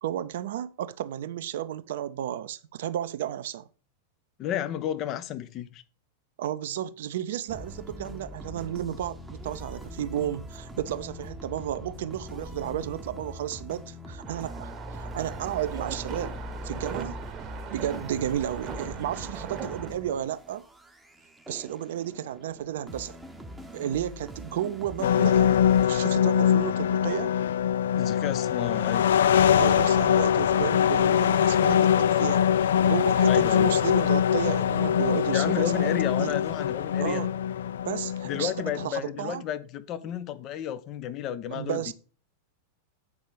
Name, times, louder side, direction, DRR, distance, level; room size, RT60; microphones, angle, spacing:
voice 1, 0.0-3.7 6.4-16.4 16.6-17.2 17.7-20.6 21.5-23.2 23.7-27.3 29.6-36.4 37.0-37.4 37.9-39.4 41.5-41.9, right 11 dB, 55° right, 0.6 m, -33 dB
voice 2, 4.4-5.8 27.9-29.1 33.3-33.7 35.3-37.2 38.2-41.9, left 10 dB, 35° left, 0.8 m, -32 dB
sound 1, 7.5-25.9, equal, 5° right, 1.0 m, -42 dB
sound 2, 14.2-19.9, right 7 dB, 30° right, 1.0 m, -40 dB
sound 3, 25.0-38.9, left 9 dB, 60° left, 0.3 m, -23 dB
8.3 x 5.2 x 5.0 m
figure-of-eight pair, 90°, 0 cm